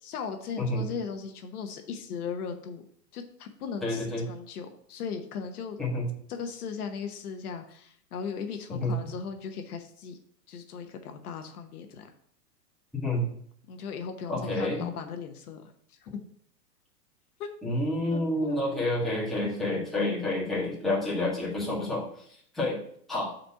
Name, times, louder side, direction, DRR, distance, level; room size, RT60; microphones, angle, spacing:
voice 1, 0.0-2.8 3.1-5.8 6.3-10.2 10.5-12.1 13.7-15.6 15.9-16.2 17.4-17.5 18.0-18.9 19.4-19.9 20.5-20.6, left 6 dB, 65° left, 6 dB, 1.0 m, -38 dB
voice 2, 0.6-0.9 3.8-4.2 5.8-6.1 8.7-8.9 13.0-13.3 14.3-14.9 17.6-22.8 23.1-23.3, left 1 dB, ahead, -8 dB, 1.8 m, -29 dB
5.3 x 4.3 x 5.7 m, 0.64 s
hypercardioid pair, 145°, 48 cm